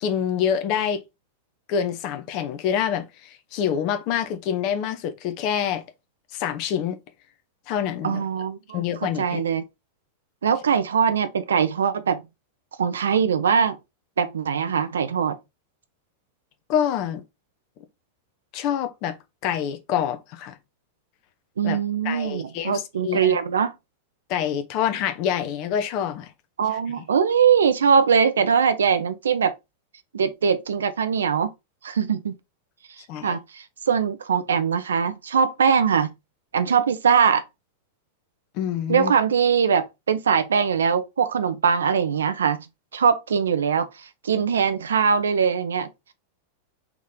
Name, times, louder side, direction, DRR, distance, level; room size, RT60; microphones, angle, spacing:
voice 1, 0.0-1.0 1.7-5.8 6.3-7.0 7.7-8.2 8.7-9.4 16.7-17.2 18.5-19.2 19.4-20.6 21.6-21.8 22.0-23.4 24.3-26.3 33.1-33.4 38.5-39.1, left 9 dB, 45° left, 0.7 m, -26 dB
voice 2, 8.0-9.6 10.4-12.2 12.8-13.8 14.2-15.4 21.6-23.7 26.6-29.5 30.1-31.5 31.8-32.3 33.2-36.1 36.5-37.4 38.9-42.7 42.9-45.9, right 6 dB, 65° right, 0.5 m, -22 dB
3.6 x 3.1 x 3.6 m
figure-of-eight pair, 90°, 0 cm